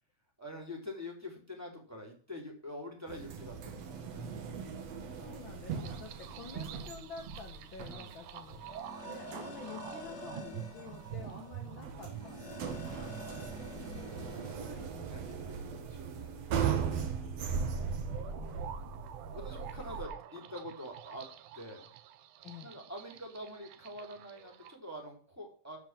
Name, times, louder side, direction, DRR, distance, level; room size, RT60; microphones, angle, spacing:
voice 1, 0.4-4.4 6.7-6.8 7.8-8.1 12.9-13.4 14.1-14.7 15.0-16.3 17.3-17.8 18.4-19.0 19.3-21.3 21.5-21.9 22.6-25.8, left 1 dB, 5° right, 1 dB, 2.9 m, -46 dB
sound 1, 3.1-20.1, right 6 dB, 55° right, 2.2 m, -39 dB
voice 2, 5.2-13.1 13.7-14.2 14.6-15.1 16.8-17.2 18.4-18.9 22.4-22.8, left 6 dB, 70° left, 3 dB, 1.1 m, -50 dB
sound 2, 5.7-24.8, right 11 dB, 75° right, 2.2 m, -48 dB
sound 3, 7.6-14.5, left 3 dB, 40° left, 1.8 m, -49 dB
13.5 x 4.8 x 7.5 m, 0.43 s
omnidirectional pair, 4.0 m